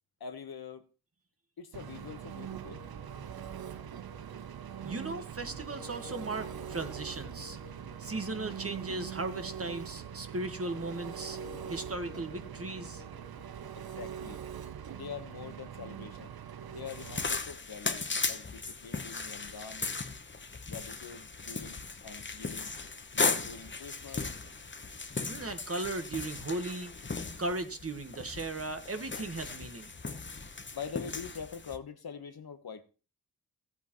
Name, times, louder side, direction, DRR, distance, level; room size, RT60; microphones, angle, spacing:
voice 1, 0.2-0.9 1.6-2.8 13.8-14.4 14.9-16.4 16.7-19.8 20.6-22.7 23.1-24.3 30.4-32.8, left 6 dB, 65° left, 1.3 m, -44 dB
Engine, 1.7-17.3, right 9 dB, 70° right, 0.8 m, -43 dB
sound 1, 2.6-13.4, left 4 dB, 85° left, 2.3 m, -54 dB
voice 2, 4.8-7.6 8.0-11.4 11.7-13.0 25.3-26.9 27.4-29.9, right 2 dB, 35° right, 1.5 m, -37 dB
sound 2, 16.9-31.8, left 4 dB, 30° left, 1.0 m, -37 dB
14.5 x 8.2 x 3.1 m
cardioid pair, 45°, 39 cm